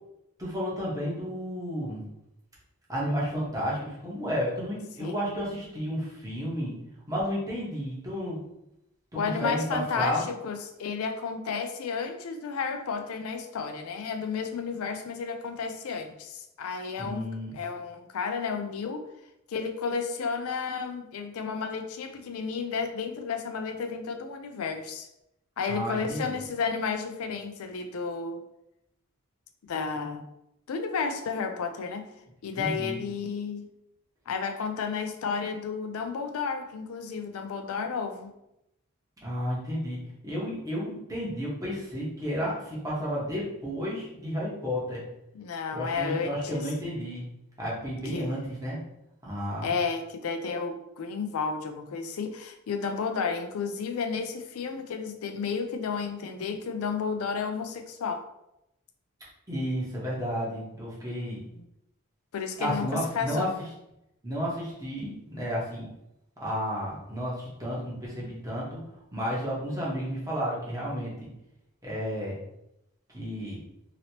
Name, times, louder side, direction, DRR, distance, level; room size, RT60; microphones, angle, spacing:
voice 1, 0.4-2.0 2.9-6.7 7.1-8.4 9.4-10.2 17.0-17.6 25.7-26.3 32.6-33.0 39.2-40.0 40.2-45.0 45.7-47.2 47.6-48.8 49.2-49.7 59.5-61.4 62.6-63.5 64.2-65.9 66.4-68.8 69.1-71.3 71.8-72.4 73.1-73.6, equal, 15° right, -6 dB, 1.0 m, -32 dB
voice 2, 9.2-19.0 19.5-25.1 25.6-28.4 29.7-30.2 30.7-32.1 32.4-33.7 34.3-38.3 45.3-46.7 48.1-48.3 49.6-58.2 62.3-63.5, left 5 dB, 85° left, 6 dB, 0.4 m, -32 dB
2.9 x 2.8 x 2.8 m, 0.84 s
head